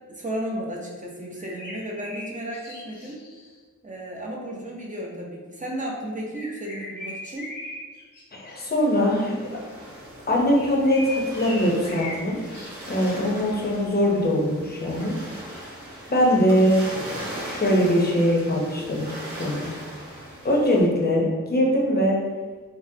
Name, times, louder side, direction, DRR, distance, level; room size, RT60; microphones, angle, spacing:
voice 1, 0.1-3.2 3.8-7.5, right 1 dB, 25° right, -2 dB, 0.6 m, -33 dB
sound 1, 1.4-3.5 6.3-8.2 8.5-8.8 10.5-12.2 12.5-13.2, left 2 dB, 80° left, 0.7 m, -39 dB
voice 2, 8.4-9.6 10.3-12.4 12.9-15.7 16.1-16.9 17.4-19.1 19.4-19.7 20.4-22.2, equal, 30° left, -3 dB, 0.7 m, -22 dB
sound 2, 8.5-20.8, equal, 50° right, 1.1 m, -39 dB
3.6 x 2.0 x 2.7 m, 1.4 s
wide cardioid pair, 85°, 31 cm